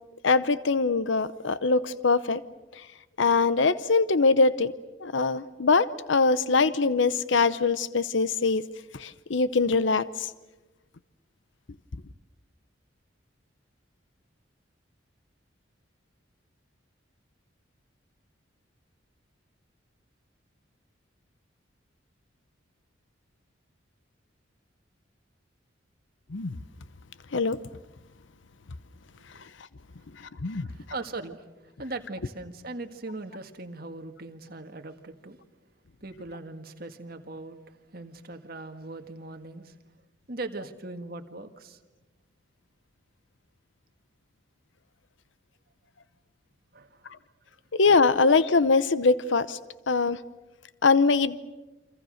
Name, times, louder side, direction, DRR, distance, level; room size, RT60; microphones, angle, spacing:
voice 1, 0.2-2.4 3.2-4.7 5.0-8.6 9.0-10.3 26.3-26.5 27.3-27.6 30.4-30.7 47.7-49.6 49.9-50.2 50.8-51.4, left 4 dB, 70° left, 16 dB, 0.7 m, -22 dB
voice 2, 30.6-35.4 36.0-37.6 37.9-39.7 40.3-41.8 46.7-47.0, right 2 dB, 50° right, 6 dB, 1.8 m, -39 dB
28.5 x 25.5 x 6.5 m, 1.1 s
head